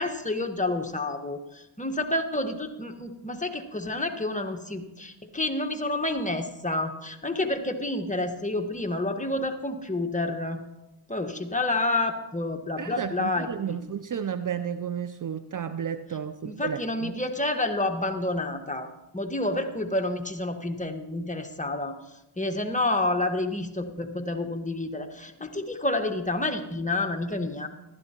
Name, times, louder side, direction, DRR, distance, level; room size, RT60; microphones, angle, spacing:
voice 1, 0.0-10.6 11.1-13.8 16.4-22.0 22.4-27.7, left 2 dB, 15° left, 5 dB, 1.5 m, -29 dB
voice 2, 12.8-17.1, right 8 dB, 40° right, 12 dB, 0.6 m, -32 dB
15.0 x 12.5 x 3.0 m, 0.92 s
supercardioid pair, 45°, 50 cm